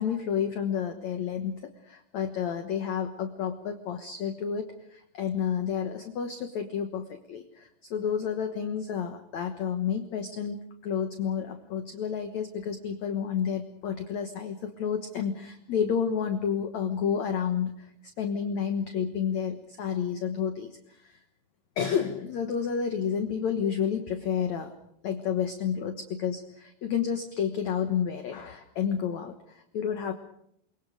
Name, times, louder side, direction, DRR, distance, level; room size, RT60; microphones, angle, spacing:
voice 1, 0.0-17.9 18.2-21.2 21.8-24.7 25.0-30.1, left 7 dB, 65° left, 6 dB, 1.9 m, -30 dB
29.0 x 23.0 x 5.1 m, 0.72 s
omnidirectional pair, 4.8 m